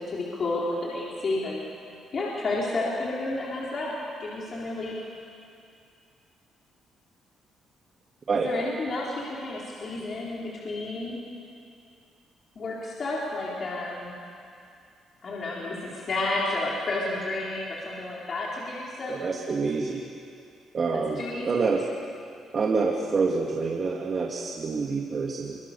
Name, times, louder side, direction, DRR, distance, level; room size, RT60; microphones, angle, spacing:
voice 1, 0.0-1.6 2.1-3.9 4.2-5.0 8.3-11.2 12.6-14.1 15.2-19.3 20.9-21.6, left 2 dB, 40° left, -5 dB, 4.1 m, -31 dB
voice 2, 19.1-20.0 20.7-21.2 21.5-21.8 22.5-25.6, right 4 dB, 40° right, 0 dB, 1.9 m, -27 dB
27.0 x 23.5 x 6.9 m, 2.5 s
cardioid pair, 120°, 0 cm